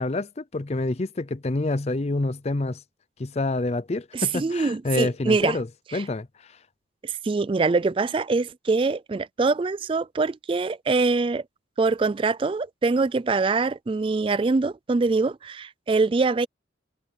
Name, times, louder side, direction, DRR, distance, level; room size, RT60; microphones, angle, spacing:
voice 1, 0.0-2.8 3.2-5.7 5.9-6.3, left 2 dB, 35° left, 0.5 m, -27 dB
voice 2, 4.1-5.6 5.9-6.0 7.0-11.4 11.8-16.5, right 3 dB, 25° right, 0.3 m, -24 dB
head